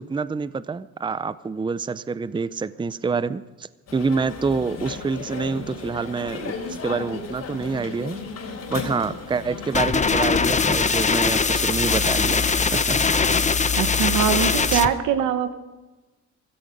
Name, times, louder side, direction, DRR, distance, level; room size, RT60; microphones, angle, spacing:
voice 1, 0.0-6.5 6.8-8.2 8.7-13.3 14.7-14.8, right 4 dB, 15° right, 16 dB, 0.5 m, -27 dB
sound 1, 3.9-11.7, left 4 dB, 60° left, 3.8 m, -35 dB
sound 2, 9.7-14.9, left 5 dB, 25° left, 0.8 m, -21 dB
voice 2, 13.8-15.5, right 8 dB, 90° right, 10 dB, 1.2 m, -22 dB
16.5 x 14.0 x 5.2 m, 1.1 s
cardioid pair, 90°, 30 cm